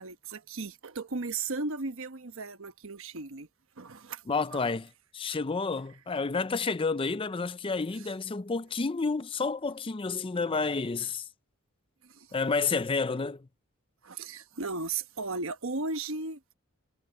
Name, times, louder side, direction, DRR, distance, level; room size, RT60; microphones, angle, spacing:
voice 1, 0.0-3.5 3.8-4.2 4.5-4.6 7.9-8.1 12.0-12.3 14.0-16.5, right 3 dB, 65° right, 1.2 m, -36 dB
voice 2, 4.3-11.3 12.3-13.5, left 4 dB, 25° left, 0.5 m, -30 dB
head